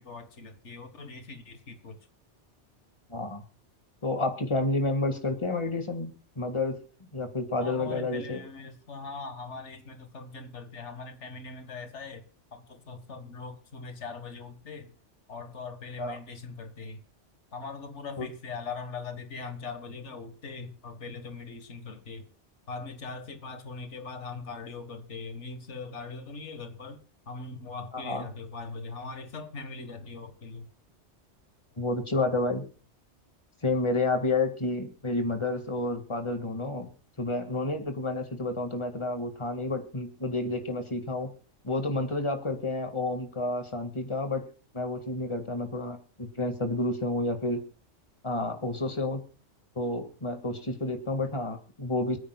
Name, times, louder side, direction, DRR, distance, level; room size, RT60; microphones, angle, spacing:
voice 1, 0.0-2.1 7.6-14.9 15.3-17.0 17.5-22.3 22.7-30.7, left 4 dB, 90° left, 1.8 m, -41 dB
voice 2, 3.1-3.4 4.0-6.8 7.1-8.4 16.0-16.2 18.2-18.3 27.9-28.2 31.8-32.6 33.6-36.9 37.2-41.3 41.6-44.5 44.7-47.6 48.2-49.2 49.8-52.2, left 2 dB, 25° left, 2.0 m, -30 dB
27.0 x 9.2 x 2.3 m
omnidirectional pair, 1.2 m